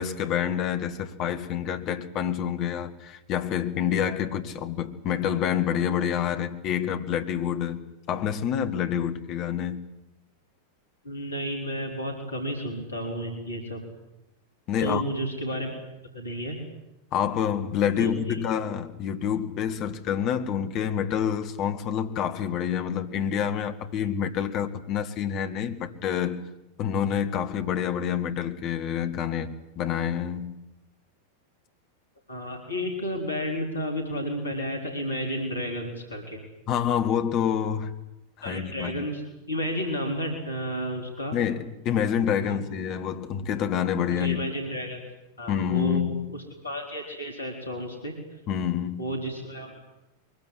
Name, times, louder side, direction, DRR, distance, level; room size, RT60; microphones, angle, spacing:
voice 1, 0.0-7.8 8.1-9.8 14.7-15.0 17.1-26.4 26.8-30.5 36.7-38.0 38.4-39.1 41.3-44.4 45.5-46.3 48.5-49.1, left 9 dB, 40° left, 1.9 m, -27 dB
voice 2, 11.0-13.8 14.8-15.7 16.1-16.6 18.0-18.4 32.3-36.4 38.4-39.2 39.5-41.4 42.4-42.6 44.2-45.0 45.4-46.0 46.3-48.2 49.0-49.8, equal, 75° left, 4.2 m, -32 dB
23.0 x 22.5 x 9.7 m
figure-of-eight pair, 90°, 0 cm